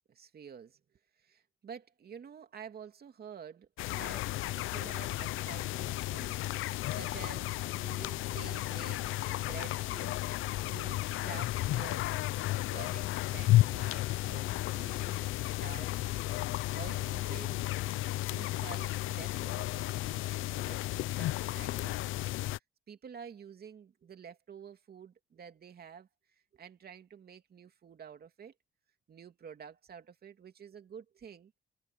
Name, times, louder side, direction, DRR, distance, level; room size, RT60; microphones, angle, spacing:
voice 1, 0.1-10.2 10.6-16.0 16.7-17.8 18.2-22.1 22.3-22.5 22.9-26.1 26.5-28.5 29.1-31.5, right 7 dB, 50° right, 2.7 m, -50 dB
sound 1, 3.8-22.6, left 16 dB, 85° left, 0.6 m, -33 dB
cardioid pair, 90°, 20 cm